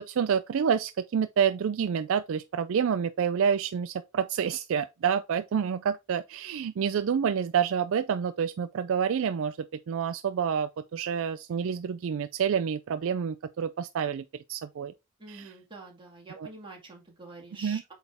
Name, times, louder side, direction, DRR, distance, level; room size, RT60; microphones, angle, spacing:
voice 1, 0.0-9.6 9.9-14.9 15.3-15.5 16.4-16.5 17.6-17.8, right 7 dB, 60° right, 0.3 m, -28 dB
voice 2, 15.2-17.9, right 3 dB, 20° right, 2.1 m, -46 dB
8.0 x 3.5 x 3.5 m
head